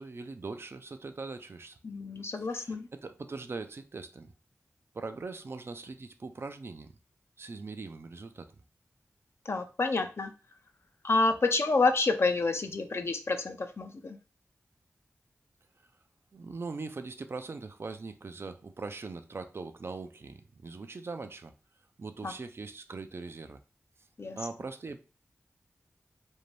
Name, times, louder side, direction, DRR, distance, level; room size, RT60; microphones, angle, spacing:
voice 1, 0.0-1.8 2.5-4.3 4.9-6.9 7.4-8.6 16.3-21.5 22.0-23.6 24.4-25.0, right 3 dB, 50° right, 0.4 m, -41 dB
voice 2, 1.8-2.9 9.5-10.3 11.0-14.2 22.2-22.3 24.2-24.4, left 3 dB, 55° left, 0.5 m, -28 dB
2.6 x 2.2 x 3.1 m
cardioid pair, 40°, 5 cm